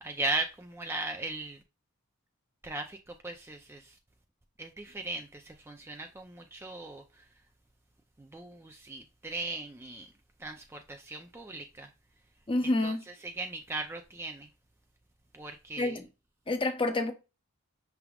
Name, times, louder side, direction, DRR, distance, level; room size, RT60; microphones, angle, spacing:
voice 1, 0.0-1.6 2.6-4.0 4.6-7.2 8.2-10.1 10.4-11.9 12.8-12.9 13.2-14.5 15.3-16.0, right 2 dB, 10° right, 0.3 m, -38 dB
voice 2, 12.5-13.0 15.8-16.0 16.5-17.1, left 2 dB, 25° left, 0.7 m, -28 dB
5.9 x 3.4 x 2.3 m
head